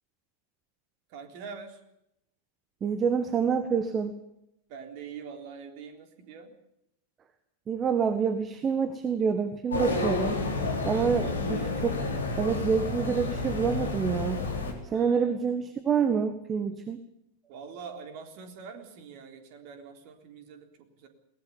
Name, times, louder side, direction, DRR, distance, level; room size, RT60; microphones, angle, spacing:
voice 1, 1.1-1.8 4.7-6.5 10.9-11.5 14.9-15.4 17.5-20.7 21.0-21.1, right 6 dB, 45° right, 6 dB, 3.7 m, -44 dB
voice 2, 2.8-4.2 7.7-10.4 10.8-12.0 12.4-14.4 14.8-17.0, right 6 dB, 25° right, 11 dB, 1.6 m, -27 dB
sound 1, 9.7-14.7, left 3 dB, 70° left, 4.5 m, -30 dB
22.0 x 19.0 x 7.3 m, 0.81 s
figure-of-eight pair, 90°, 0 cm